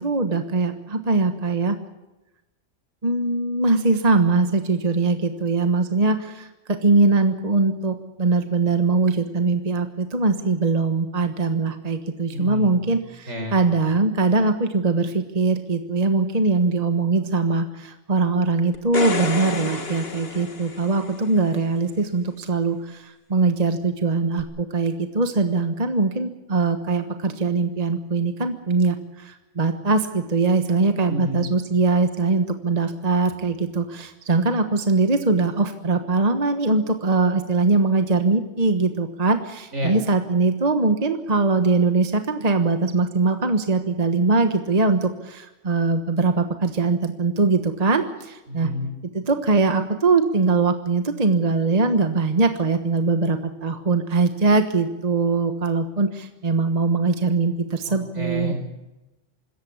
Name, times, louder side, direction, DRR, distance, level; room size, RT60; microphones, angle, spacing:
voice 1, 0.0-1.8 3.0-48.7 49.1-58.5, right 3 dB, 35° right, 7 dB, 1.3 m, -22 dB
voice 2, 12.3-12.8 13.3-13.6 31.1-31.4 39.7-39.9 48.5-48.9 57.9-58.5, left 1 dB, 70° right, 4 dB, 5.0 m, -29 dB
sound 1, 18.7-21.3 24.4-24.5, left 4 dB, 50° left, 1.8 m, -30 dB
25.5 x 14.5 x 8.7 m, 1.0 s
omnidirectional pair, 1.3 m